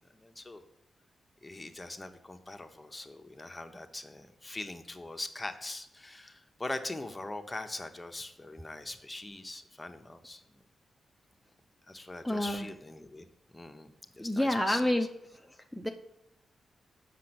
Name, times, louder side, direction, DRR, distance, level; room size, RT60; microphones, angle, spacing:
voice 1, 0.1-0.6 1.4-10.4 11.9-13.3 13.5-14.9, left 2 dB, 20° left, 6 dB, 1.1 m, -42 dB
voice 2, 12.2-12.7 14.2-15.5 15.7-15.9, left 1 dB, ahead, 5 dB, 0.7 m, -29 dB
7.5 x 6.2 x 6.0 m, 0.85 s
cardioid pair, 55°, 0 cm